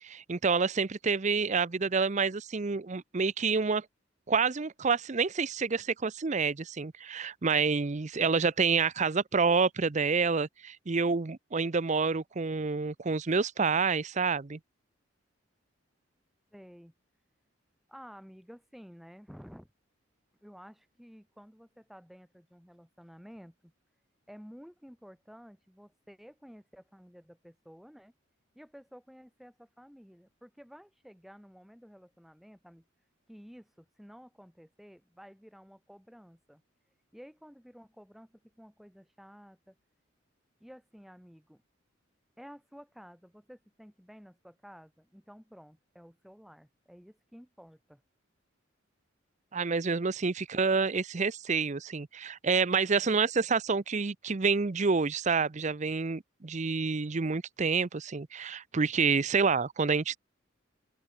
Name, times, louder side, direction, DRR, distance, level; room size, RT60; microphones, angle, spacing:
voice 1, 0.0-3.8 4.3-14.6 49.5-60.2, right 5 dB, 35° right, 0.6 m, -28 dB
voice 2, 16.5-16.9 17.9-19.7 20.4-23.7 24.3-28.1 28.5-32.8 33.3-36.6 37.1-39.8 40.6-41.6 42.4-48.0, equal, ahead, 2.9 m, -52 dB
head